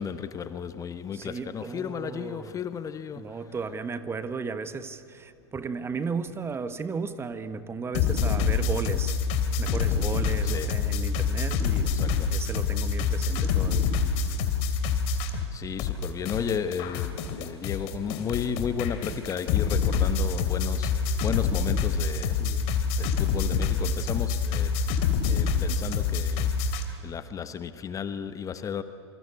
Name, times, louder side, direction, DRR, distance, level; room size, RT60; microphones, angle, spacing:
voice 1, 0.0-3.3 10.4-10.8 11.8-12.3 15.5-20.9 21.2-22.4 23.0-24.8 25.2-26.5 27.0-28.8, left 7 dB, 20° left, 11 dB, 1.1 m, -34 dB
voice 2, 1.1-2.5 3.2-9.2 9.6-13.9 22.4-22.7, right 5 dB, 15° right, 11 dB, 1.3 m, -35 dB
sound 1, 7.9-15.5 15.8-26.8, left 5 dB, 45° left, 3.0 m, -26 dB
27.5 x 26.0 x 8.2 m, 2.5 s
figure-of-eight pair, 90°, 15 cm